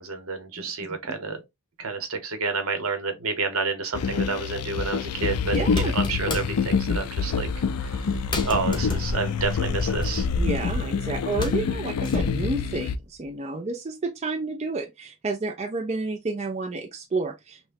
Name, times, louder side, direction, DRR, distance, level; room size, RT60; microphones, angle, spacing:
voice 1, 0.0-1.4 1.8-7.5 7.9-8.0 8.4-10.3, right 4 dB, 70° right, 1.0 m, -29 dB
sound 1, 3.9-13.0, left 5 dB, 90° left, 0.4 m, -26 dB
sound 2, 4.6-4.8 5.5-6.7 7.3-7.5 7.9-8.0 8.3-10.8 11.1-12.4, left 2 dB, 20° left, 0.8 m, -35 dB
voice 2, 5.5-5.9 10.3-17.6, right 3 dB, 30° right, 0.4 m, -30 dB
sound 3, 8.1-13.3, equal, 55° right, 1.4 m, -34 dB
6.0 x 2.2 x 2.6 m
head